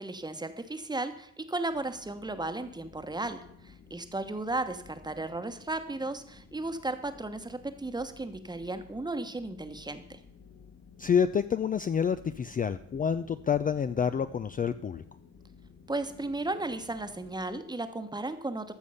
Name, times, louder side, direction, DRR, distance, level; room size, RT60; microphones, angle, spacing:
voice 1, 0.0-10.2 15.9-18.7, right 2 dB, 15° right, 8 dB, 1.1 m, -35 dB
sound 1, 1.7-17.6, left 5 dB, 50° left, 2.0 m, -54 dB
voice 2, 11.0-15.0, left 7 dB, 30° left, 11 dB, 0.4 m, -28 dB
14.0 x 6.4 x 5.6 m, 0.74 s
cardioid pair, 90°, 30 cm